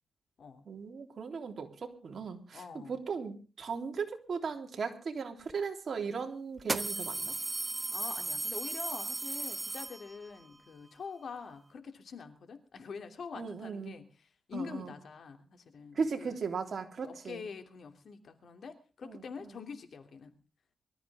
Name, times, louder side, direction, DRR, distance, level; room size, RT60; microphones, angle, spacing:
voice 1, 0.6-7.3 13.3-14.0 14.5-14.9 15.9-17.4 19.0-19.2, right 5 dB, 55° right, 4 dB, 3.4 m, -37 dB
voice 2, 2.5-3.0 7.9-16.4 17.0-20.4, left 5 dB, 65° left, 7 dB, 2.8 m, -45 dB
sound 1, 5.5-5.6 6.6-10.4, right 2 dB, 25° right, 1.1 m, -36 dB
23.5 x 14.0 x 3.6 m, 0.36 s
wide cardioid pair, 120°, 0 cm